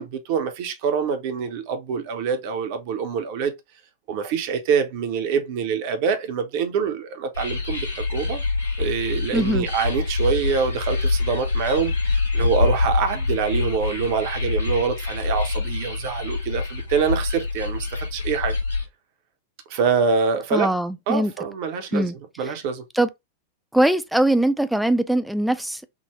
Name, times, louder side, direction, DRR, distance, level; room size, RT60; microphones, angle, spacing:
voice 1, 0.0-3.5 4.1-8.4 8.8-18.5 19.7-20.7 21.1-22.1 22.4-22.8, right 6 dB, 45° right, 0.7 m, -25 dB
sound 1, 7.3-18.9, left 3 dB, 80° left, 1.1 m, -25 dB
voice 2, 9.3-9.7 20.5-21.3 21.9-22.2 22.9-23.1 23.7-25.9, right 1 dB, ahead, 0.3 m, -21 dB
3.7 x 2.0 x 2.9 m
figure-of-eight pair, 90°, 0 cm